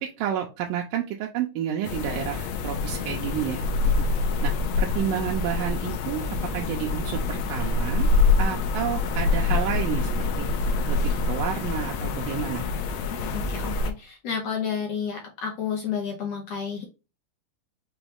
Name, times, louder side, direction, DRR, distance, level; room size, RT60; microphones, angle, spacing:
voice 1, 0.0-4.1 4.4-8.1 8.4-10.5 10.9-12.7, right 10 dB, 85° right, 0 dB, 2.2 m, -30 dB
sound 1, 1.8-13.9, left 3 dB, 85° left, 1.5 m, -25 dB
voice 2, 13.3-16.8, left 7 dB, 65° left, 0 dB, 1.7 m, -31 dB
5.9 x 2.3 x 3.3 m, 0.30 s
omnidirectional pair, 3.9 m